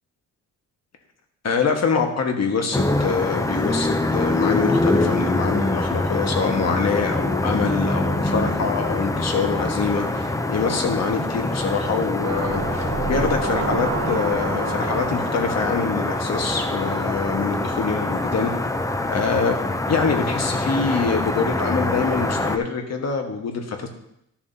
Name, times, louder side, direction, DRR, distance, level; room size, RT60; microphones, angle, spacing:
voice 1, 1.4-18.7 19.1-19.6 19.9-23.9, left 5 dB, 50° left, 4 dB, 1.4 m, -25 dB
sound 1, 2.7-22.6, left 2 dB, 10° left, 0.4 m, -24 dB
sound 2, 12.2-17.1 17.5-17.6, right 4 dB, 70° right, 2.8 m, -30 dB
12.5 x 7.2 x 2.8 m, 0.78 s
cardioid pair, 125°, 33 cm